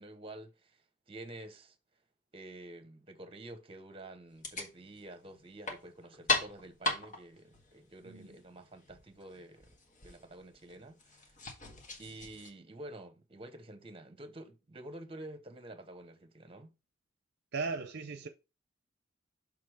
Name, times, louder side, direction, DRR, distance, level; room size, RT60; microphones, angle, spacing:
voice 1, 0.0-1.7 2.3-9.7 10.0-11.3 12.0-16.8, right 1 dB, 30° right, 1.0 m, -49 dB
sound 1, 4.3-12.5, left 2 dB, 40° left, 1.6 m, -39 dB
voice 2, 17.5-18.3, right 4 dB, 55° right, 0.6 m, -37 dB
6.8 x 3.6 x 4.8 m
head